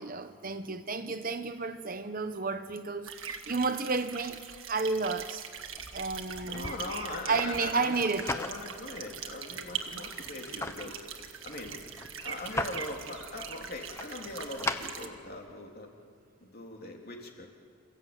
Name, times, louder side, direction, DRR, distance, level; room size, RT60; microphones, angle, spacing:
voice 1, 0.0-5.4 5.9-6.7 7.3-8.3, right 4 dB, 40° right, 0.9 m, -32 dB
sound 1, 3.0-15.1, right 7 dB, 65° right, 1.7 m, -42 dB
sound 2, 5.6-15.5, left 2 dB, 10° left, 1.0 m, -41 dB
voice 2, 6.5-11.0 11.4-11.8 12.2-15.9 16.4-17.5, left 2 dB, 45° left, 3.6 m, -41 dB
28.5 x 16.0 x 9.0 m
head